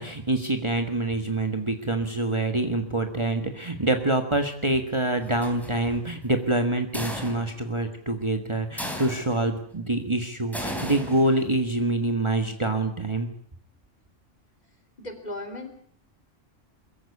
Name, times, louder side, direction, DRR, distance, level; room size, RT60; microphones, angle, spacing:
voice 1, 0.0-13.3, right 2 dB, 25° right, 5 dB, 1.5 m, -26 dB
sound 1, 5.2-6.0 6.9-7.7 8.8-9.5 10.5-11.6, equal, ahead, 3.8 m, -35 dB
voice 2, 15.0-15.7, left 1 dB, 35° left, 6 dB, 3.6 m, -36 dB
23.0 x 15.0 x 8.3 m, 0.64 s
omnidirectional pair, 1.2 m